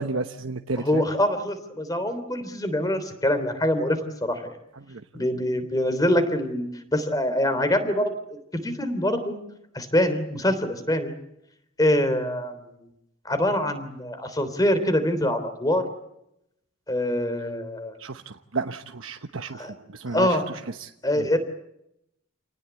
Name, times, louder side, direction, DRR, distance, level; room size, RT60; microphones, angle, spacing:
voice 1, 0.0-1.1 4.9-5.0 18.0-20.9 21.2-21.3, right 3 dB, 85° right, 6 dB, 1.1 m, -32 dB
voice 2, 0.8-4.5 5.1-6.7 6.9-9.4 9.7-11.1 11.8-12.8 13.2-15.9 16.9-17.9 19.5-19.7 20.1-20.5 21.0-21.4, left 1 dB, 20° left, 10 dB, 3.3 m, -24 dB
28.5 x 19.0 x 8.3 m, 0.80 s
head